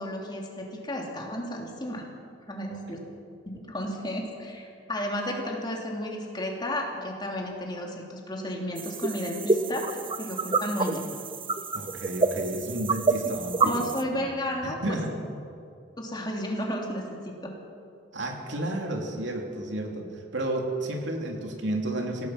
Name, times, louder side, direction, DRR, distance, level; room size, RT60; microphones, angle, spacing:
voice 1, 0.0-2.0 2.5-3.0 3.5-11.0 13.6-15.0 16.0-17.5, left 1 dB, 25° left, 0 dB, 3.2 m, -33 dB
sound 1, 8.8-14.0, right 4 dB, 25° right, 0.7 m, -28 dB
voice 2, 11.7-13.8 14.1-14.3 14.6-15.1 18.1-20.1 20.3-22.3, right 1 dB, 65° right, 1 dB, 3.0 m, -32 dB
26.0 x 17.5 x 6.1 m, 2.5 s
head